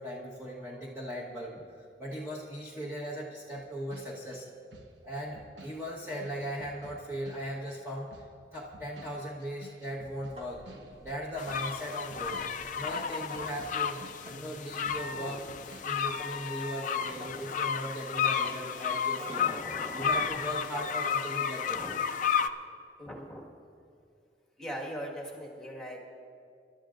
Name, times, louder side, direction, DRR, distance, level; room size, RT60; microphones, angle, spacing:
voice 1, 0.0-1.6 2.0-4.5 5.0-8.2 8.5-10.6 11.0-12.5 12.7-14.0 14.3-19.6 19.9-21.8, equal, 15° right, -6 dB, 1.3 m, -38 dB
sound 1, 3.5-7.8 8.1-14.6 14.9-16.3, right 1 dB, 85° right, 1.1 m, -54 dB
sound 2, 10.2-20.9, left 2 dB, 35° right, 1.9 m, -52 dB
sound 3, 11.4-22.5, left 7 dB, 45° left, 0.4 m, -32 dB
voice 2, 12.8-13.3 15.1-15.5 17.2-17.5 19.2-20.3 21.7-21.9 23.0-23.4 24.6-26.0, equal, 5° left, -3 dB, 1.7 m, -42 dB
26.0 x 11.5 x 2.5 m, 2.3 s
head